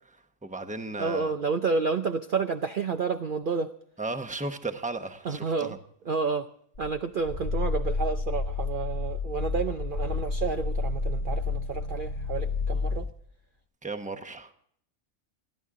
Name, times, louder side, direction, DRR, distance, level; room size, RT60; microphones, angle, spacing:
voice 1, 0.4-1.3 4.0-5.8 13.8-14.5, right 3 dB, 5° right, 7 dB, 0.9 m, -35 dB
voice 2, 1.0-3.7 5.2-5.8 6.1-6.5 6.8-13.1, right 5 dB, 50° right, 6 dB, 0.7 m, -30 dB
Growling, 6.8-13.1, left 3 dB, 60° left, 2.2 m, -30 dB
28.5 x 11.5 x 3.7 m, 0.65 s
omnidirectional pair, 1.4 m